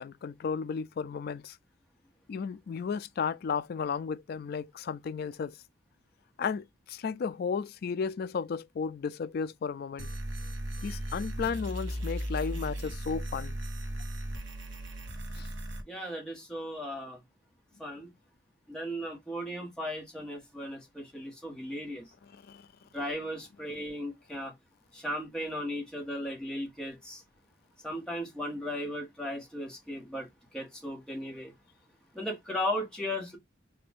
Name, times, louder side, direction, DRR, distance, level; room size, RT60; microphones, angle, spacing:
voice 1, 0.0-1.6 2.3-5.6 6.4-10.1 10.8-13.6 15.4-15.5 22.3-22.7, left 5 dB, 50° left, 0.3 m, -34 dB
sound 1, 10.0-15.8, equal, 75° right, 1.0 m, -36 dB
voice 2, 15.9-17.2 17.8-18.1 18.7-22.0 22.9-24.5 24.9-27.2 27.8-30.3 30.5-31.5 32.1-33.4, equal, 5° left, 1.4 m, -36 dB
3.8 x 2.5 x 3.5 m
head